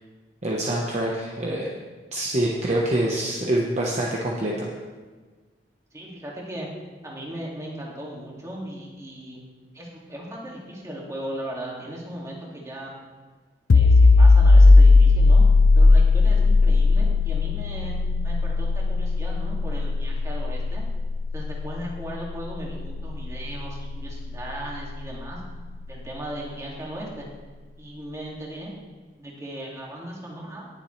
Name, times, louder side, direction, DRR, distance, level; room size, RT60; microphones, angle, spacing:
voice 1, 0.4-1.7 2.1-4.7, right 1 dB, 40° right, -3 dB, 1.0 m, -25 dB
voice 2, 5.9-6.7 7.0-9.4 9.7-12.9 13.7-15.4 15.7-17.9 18.2-20.8 21.3-25.4 25.9-27.3 27.8-28.7 29.2-30.7, right 1 dB, 15° right, -3 dB, 2.2 m, -37 dB
sound 1, 13.7-25.1, left 3 dB, 80° left, 0.5 m, -18 dB
18.5 x 7.3 x 3.2 m, 1.4 s
head